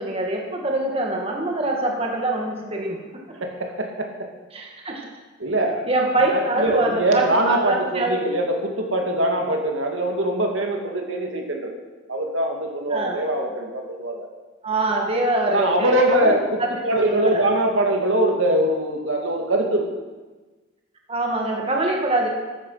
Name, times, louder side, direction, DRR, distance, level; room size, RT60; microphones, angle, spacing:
voice 1, 0.0-3.0 4.5-5.1 5.9-8.2 12.9-13.2 14.6-16.3 16.6-16.7 17.0-17.5 21.1-22.3, right 2 dB, 30° right, 0 dB, 2.2 m, -24 dB
voice 2, 3.4-4.1 5.4-5.9 6.3-11.8 12.1-14.3 15.5-20.0, right 1 dB, 70° right, 1 dB, 2.4 m, -22 dB
15.0 x 13.0 x 5.8 m, 1.2 s
head